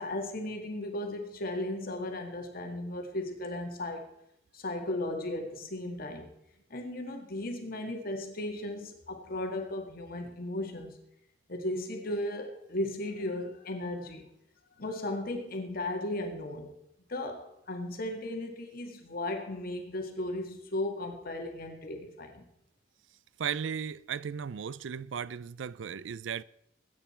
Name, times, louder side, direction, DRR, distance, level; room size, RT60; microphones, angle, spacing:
voice 1, 0.0-4.1 4.5-6.3 6.7-11.0 11.5-14.3 14.8-16.8 17.1-22.5, left 1 dB, 55° left, 2.0 m, -36 dB
voice 2, 23.4-26.4, right 7 dB, 85° right, 0.4 m, -36 dB
20.0 x 9.2 x 4.4 m
head